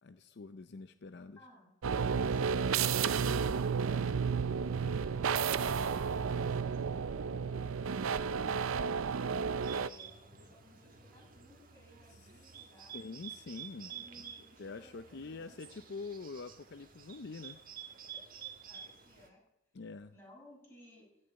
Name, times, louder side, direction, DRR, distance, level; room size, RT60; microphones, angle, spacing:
voice 1, 0.0-1.4 12.1-12.2 12.9-14.0 14.6-17.6 19.7-20.1, left 4 dB, 55° left, 10 dB, 0.5 m, -45 dB
voice 2, 1.4-1.7 2.1-4.1 4.6-9.0 9.7-13.2 13.9-15.8 18.0-19.4 20.1-21.1, left 1 dB, 10° left, -5 dB, 7.6 m, -60 dB
sound 1, 1.8-9.9, right 6 dB, 80° right, 0.5 m, -32 dB
Bird, 9.6-19.3, right 8 dB, 40° right, 1.6 m, -50 dB
16.5 x 6.6 x 9.7 m, 0.84 s
head